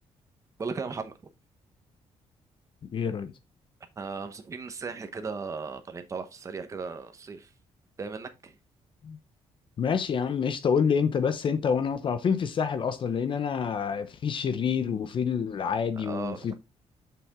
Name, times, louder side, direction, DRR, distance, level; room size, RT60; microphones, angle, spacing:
voice 1, 0.6-1.1 4.0-7.5 8.0-8.6 16.0-16.5, right 4 dB, 25° right, 1.0 m, -36 dB
voice 2, 2.9-3.3 9.0-9.2 9.8-16.6, left 6 dB, 45° left, 0.8 m, -27 dB
6.9 x 6.0 x 3.7 m
cardioid pair, 140°, 12 cm